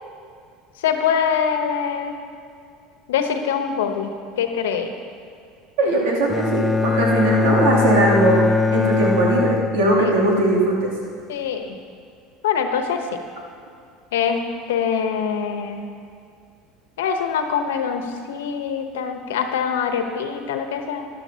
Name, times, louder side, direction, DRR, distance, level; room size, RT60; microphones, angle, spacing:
voice 1, 0.8-2.2 3.1-5.0 10.0-10.1 11.3-11.8 12.4-13.1 14.1-15.9 17.0-21.1, left 7 dB, 90° left, 6 dB, 0.9 m, -24 dB
voice 2, 5.8-8.4 8.7-10.9, right 1 dB, 80° right, -4 dB, 2.7 m, -19 dB
Bowed string instrument, 6.3-10.4, left 3 dB, 15° left, 0.4 m, -21 dB
14.0 x 10.5 x 2.8 m, 2.4 s
hypercardioid pair, 90°, 0 cm